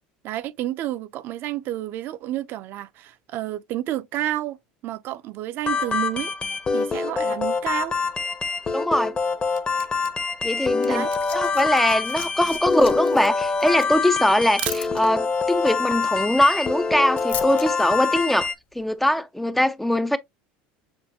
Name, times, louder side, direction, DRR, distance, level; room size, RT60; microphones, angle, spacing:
voice 1, 0.2-4.6 4.8-6.3 6.7-8.0 10.8-11.1, right 14 dB, 50° right, 0.5 m, -30 dB
sound 1, 5.6-18.5, left 4 dB, 20° left, 0.8 m, -25 dB
voice 2, 8.7-9.1 10.4-11.1 11.3-18.5 18.8-20.2, left 1 dB, 5° left, 0.4 m, -21 dB
Camera, 9.1-15.3, right 13 dB, 85° right, 0.7 m, -38 dB
Liquid, 10.7-17.7 18.7-18.8, left 8 dB, 40° left, 1.2 m, -40 dB
7.1 x 2.5 x 2.8 m
supercardioid pair, 120°, 5 cm